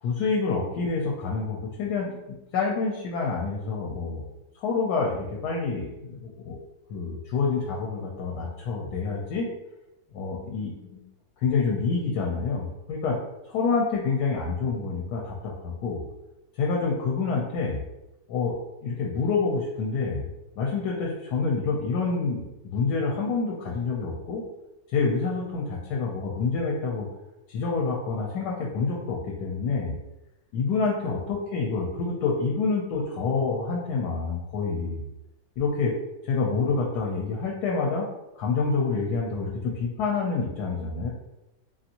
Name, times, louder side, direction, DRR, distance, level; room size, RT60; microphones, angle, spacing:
voice 1, 0.0-4.2 4.6-6.6 6.9-9.5 10.1-11.1 11.4-13.2 13.5-16.0 16.5-17.8 18.3-18.5 18.8-24.4 24.9-27.1 27.5-29.9 30.5-35.0 35.6-35.9 36.2-38.1 38.4-41.1, left 4 dB, 75° left, -2 dB, 1.1 m, -27 dB
2.8 x 2.5 x 2.7 m, 0.96 s
omnidirectional pair, 1.8 m